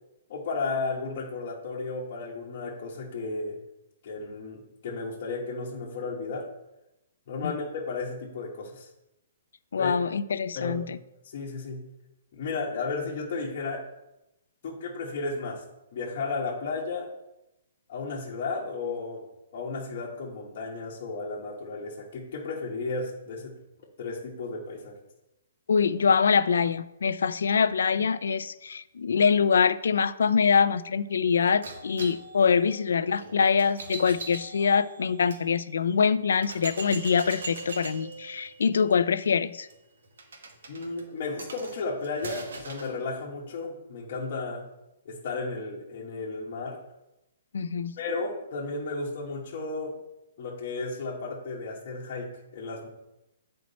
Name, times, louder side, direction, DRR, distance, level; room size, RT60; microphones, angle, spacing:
voice 1, 0.3-3.6 4.0-6.5 7.3-8.9 9.8-9.9 10.5-10.8 11.2-11.8 12.3-13.8 14.6-15.6 15.9-17.1 17.9-19.2 19.5-23.5 24.0-24.9 40.7-44.6 45.0-46.8 48.0-50.0 50.4-52.9, left 3 dB, 40° left, -4 dB, 1.3 m, -34 dB
voice 2, 9.7-11.0 25.7-39.7 47.5-47.9, left 6 dB, 90° left, 15 dB, 0.4 m, -24 dB
sound 1, 31.6-35.4 36.0-36.1 36.4-42.9, right 3 dB, 80° right, 1.3 m, -41 dB
8.6 x 4.5 x 4.2 m, 0.92 s
hypercardioid pair, 170°, 0 cm